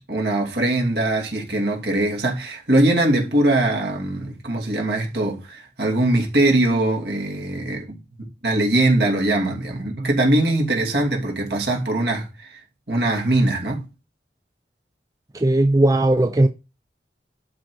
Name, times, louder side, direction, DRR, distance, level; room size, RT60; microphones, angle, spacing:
voice 1, 0.0-12.6 12.9-13.9, right 1 dB, 65° right, 2.7 m, -21 dB
voice 2, 15.3-16.5, right 1 dB, 20° right, 0.5 m, -17 dB
11.5 x 3.9 x 4.6 m
head